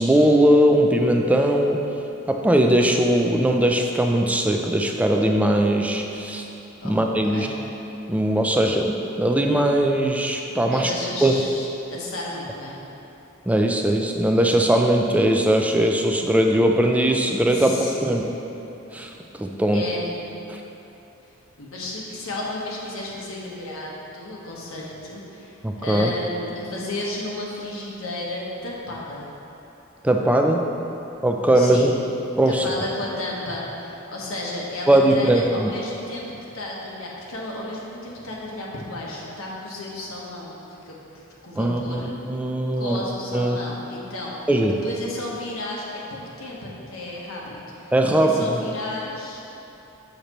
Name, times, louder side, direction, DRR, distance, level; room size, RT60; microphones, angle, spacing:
voice 1, 0.0-1.8 2.3-6.5 6.8-7.5 8.1-10.9 11.2-11.3 13.5-18.2 18.9-19.1 19.4-19.9 20.5-20.6 25.6-26.1 30.0-30.6 31.2-31.9 32.4-32.7 34.9-35.7 41.6-43.0 43.3-43.6 44.5-44.8 47.9-48.6, right 1 dB, 5° right, 2 dB, 0.3 m, -20 dB
voice 2, 10.6-12.8 17.5-18.2 19.7-20.1 21.6-29.3 31.5-31.9 32.4-36.3 36.5-42.1 42.7-44.5 44.8-49.4, left 1 dB, 80° left, -4 dB, 1.2 m, -33 dB
6.6 x 6.6 x 3.0 m, 3.0 s
head